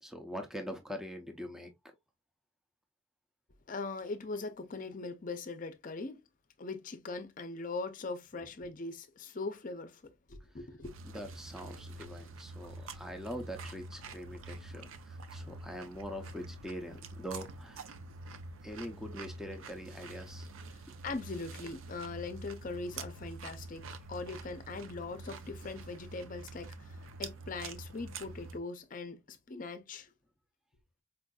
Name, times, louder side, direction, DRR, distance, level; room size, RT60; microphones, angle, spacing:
voice 1, 0.0-1.7 11.1-17.9 18.6-20.5, equal, ahead, 0.5 m, -43 dB
voice 2, 3.7-6.2 6.6-10.9 20.7-30.1, left 3 dB, 40° left, 0.6 m, -41 dB
sound 1, 10.8-28.6, right 3 dB, 90° right, 0.5 m, -46 dB
4.5 x 2.5 x 2.2 m
head